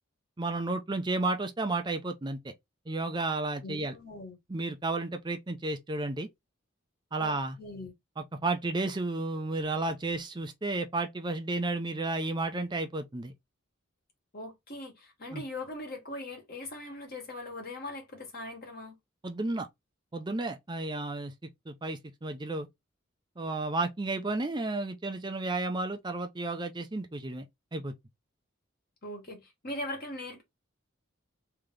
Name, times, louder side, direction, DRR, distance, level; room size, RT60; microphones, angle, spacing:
voice 1, 0.4-2.5 2.9-3.9 4.5-6.3 7.1-7.6 8.4-13.3 15.3-15.4 19.2-19.7 20.1-21.3 21.7-22.7 23.4-27.5 27.7-27.9, right 2 dB, 20° right, 0.5 m, -32 dB
voice 2, 3.6-4.4 7.2-7.9 14.3-18.9 29.0-30.4, left 1 dB, 50° left, 1.7 m, -40 dB
3.3 x 2.9 x 3.6 m
head